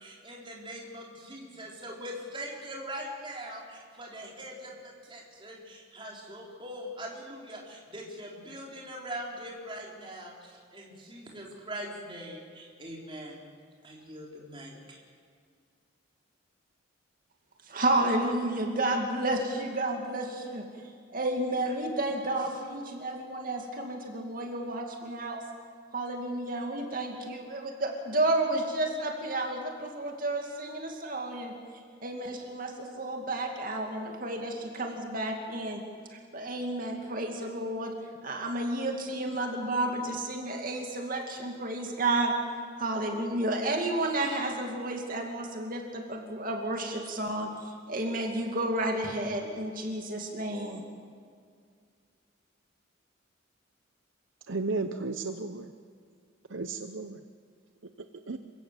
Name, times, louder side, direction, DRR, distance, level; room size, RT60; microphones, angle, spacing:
voice 1, 0.0-13.4 13.8-15.0, equal, 25° right, -2 dB, 4.1 m, -42 dB
voice 2, 17.7-20.6 21.1-25.4 25.9-31.5 32.0-35.8 36.1-37.9 38.2-42.3 42.8-50.8, right 2 dB, 45° right, 2 dB, 2.4 m, -31 dB
voice 3, 54.5-55.7 56.5-57.2 58.3-58.4, right 3 dB, 70° right, 8 dB, 0.8 m, -33 dB
28.0 x 16.5 x 7.5 m, 2.1 s
head